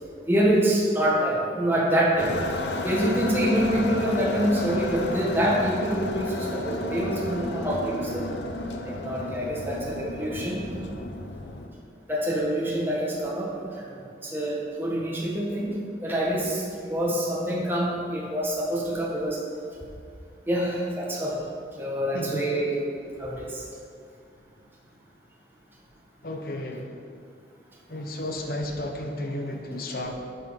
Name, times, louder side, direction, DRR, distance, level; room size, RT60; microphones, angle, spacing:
voice 1, 0.3-2.3 2.8-8.3 8.8-10.6 12.1-15.7 16.0-19.4 20.5-21.4 21.7-22.8 23.2-23.6, right 1 dB, 10° right, -4 dB, 1.6 m, -26 dB
sound 1, 2.2-11.7, left 2 dB, 75° left, 0.8 m, -32 dB
voice 2, 26.2-26.9 27.9-30.1, left 1 dB, 55° left, 3 dB, 0.9 m, -32 dB
11.0 x 5.7 x 5.8 m, 2.3 s
head